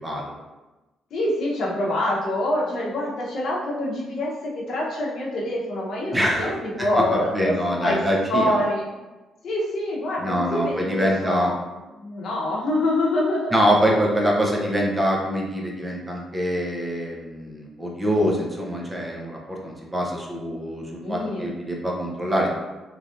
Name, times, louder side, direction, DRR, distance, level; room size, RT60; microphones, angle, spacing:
voice 1, 0.0-0.3 6.1-6.5 6.9-8.6 10.2-11.5 13.5-22.5, equal, 15° right, -1 dB, 0.6 m, -24 dB
voice 2, 1.1-7.5 7.8-8.0 8.3-8.9 9.4-11.6 12.0-13.5 21.0-21.5, left 1 dB, 65° left, -4 dB, 0.8 m, -25 dB
3.2 x 2.5 x 2.5 m, 1.1 s
cardioid pair, 90°, 0 cm